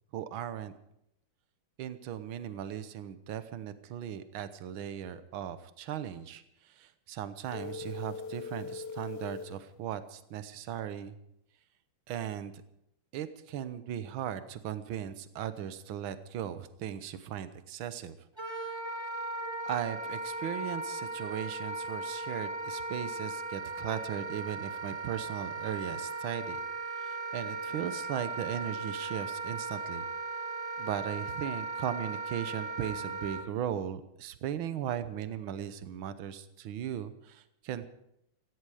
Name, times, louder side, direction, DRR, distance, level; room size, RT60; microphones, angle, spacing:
voice 1, 0.1-0.7 1.8-11.1 12.1-12.5 13.1-18.2 18.5-18.8 19.7-26.6 26.9-30.1 30.8-37.8, right 10 dB, 70° right, 12 dB, 1.7 m, -37 dB
sound 1, 7.5-9.6, left 4 dB, 60° left, 1.3 m, -40 dB
Wind instrument woodwind instrument, 18.4-33.4, right 3 dB, 20° right, 0.9 m, -37 dB
16.5 x 16.0 x 5.0 m, 0.77 s
omnidirectional pair, 2.4 m